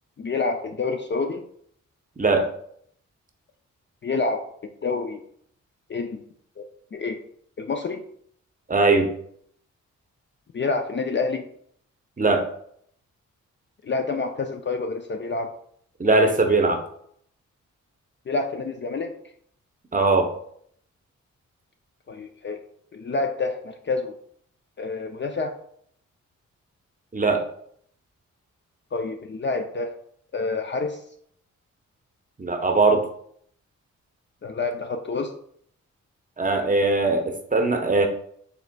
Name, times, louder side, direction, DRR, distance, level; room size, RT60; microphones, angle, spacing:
voice 1, 0.2-1.4 4.0-4.4 4.8-5.2 5.9-6.2 6.6-6.7 6.9-7.2 7.6-8.0 10.5-11.4 13.8-15.5 18.3-19.1 22.1-22.6 22.9-24.2 24.8-25.6 28.9-29.9 30.3-31.0 34.4-35.3, left 3 dB, 35° left, 5 dB, 0.5 m, -28 dB
voice 2, 8.7-9.1 12.2-12.4 16.0-16.8 19.9-20.3 27.1-27.4 32.4-33.0 36.4-38.1, right 3 dB, 25° right, 4 dB, 0.7 m, -20 dB
4.9 x 3.2 x 2.2 m, 0.65 s
cardioid pair, 55°, 32 cm